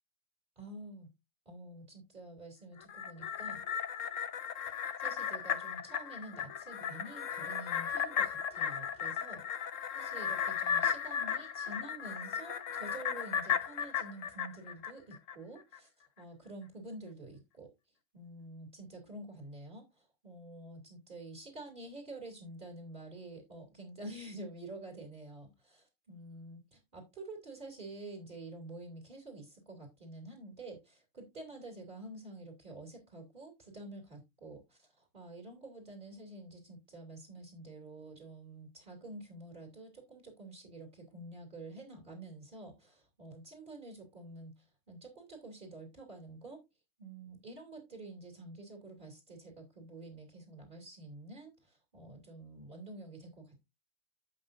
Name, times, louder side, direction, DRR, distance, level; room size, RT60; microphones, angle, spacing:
voice 1, 0.6-1.1 1.4-3.6 4.6-4.7 5.0-9.4 9.9-15.9 16.2-17.7 18.1-46.6 47.0-53.6, right 2 dB, 40° right, 1 dB, 3.0 m, -48 dB
sound 1, 2.8-15.4 15.7-15.8, left 8 dB, 75° left, 1.2 m, -35 dB
11.5 x 8.0 x 2.6 m, 0.23 s
omnidirectional pair, 1.3 m